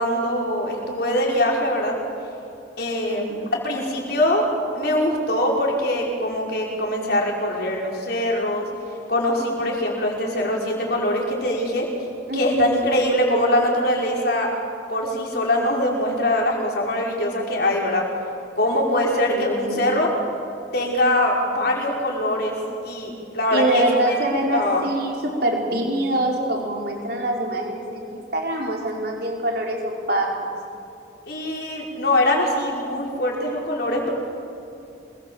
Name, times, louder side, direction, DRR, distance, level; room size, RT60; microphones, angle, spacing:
voice 1, 0.0-1.9 2.8-4.4 4.8-8.6 9.1-11.9 12.3-14.5 14.9-18.0 18.6-20.1 20.7-22.6 22.8-24.2 24.5-24.8 31.3-34.1, left 1 dB, 55° left, -1 dB, 5.4 m, -22 dB
voice 2, 3.1-3.5 12.3-12.8 19.3-19.9 23.5-30.5, right 1 dB, 55° right, -1 dB, 4.9 m, -25 dB
26.5 x 21.0 x 7.9 m, 2.9 s
head